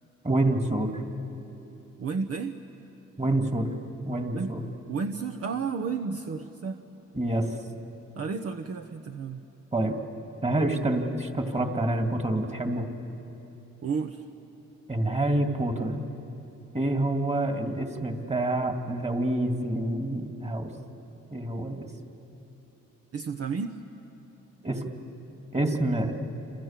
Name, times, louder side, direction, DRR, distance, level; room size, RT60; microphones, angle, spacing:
voice 1, 0.2-1.0 3.2-3.7 4.1-4.6 7.1-7.5 9.7-10.0 10.4-12.9 14.9-16.1 16.7-20.7 21.3-21.9 24.6-24.8 25.5-26.1, right 1 dB, 20° right, 4 dB, 2.6 m, -27 dB
voice 2, 2.0-2.6 4.3-4.5 4.9-6.8 8.2-9.4 13.8-14.2 23.1-23.8, right 5 dB, 50° right, 4 dB, 1.1 m, -32 dB
28.5 x 27.5 x 7.5 m, 3.0 s
cardioid pair, 90°, 30 cm